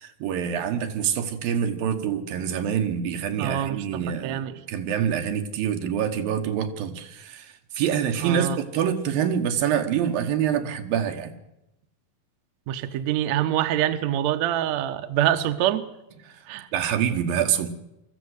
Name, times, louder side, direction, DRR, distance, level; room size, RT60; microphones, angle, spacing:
voice 1, 0.0-11.3 16.3-16.4 16.7-17.7, right 8 dB, 80° right, 7 dB, 3.1 m, -26 dB
voice 2, 3.4-4.5 8.2-8.6 12.7-15.9 16.5-16.7, right 12 dB, 65° right, 9 dB, 1.9 m, -25 dB
22.0 x 14.5 x 8.1 m, 0.90 s
omnidirectional pair, 4.0 m